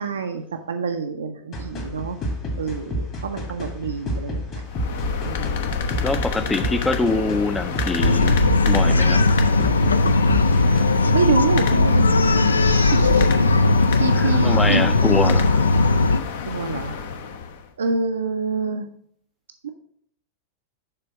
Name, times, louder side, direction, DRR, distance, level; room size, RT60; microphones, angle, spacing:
voice 1, 0.0-2.2 2.6-4.6 5.3-5.6 11.1-13.3 14.0-14.8 16.5-17.0 17.8-18.9 19.6-19.7, right 5 dB, 70° right, 6 dB, 0.4 m, -27 dB
sound 1, 1.5-10.8, equal, 35° left, 1.7 m, -30 dB
sound 2, 4.7-17.7, left 5 dB, 55° left, 0.7 m, -29 dB
voice 2, 6.0-9.4 14.1-16.2, left 3 dB, 10° left, 10 dB, 0.4 m, -25 dB
Bark, 8.0-16.2, left 2 dB, 75° left, 0.3 m, -18 dB
6.7 x 3.4 x 5.8 m, 0.64 s
figure-of-eight pair, 90°, 0 cm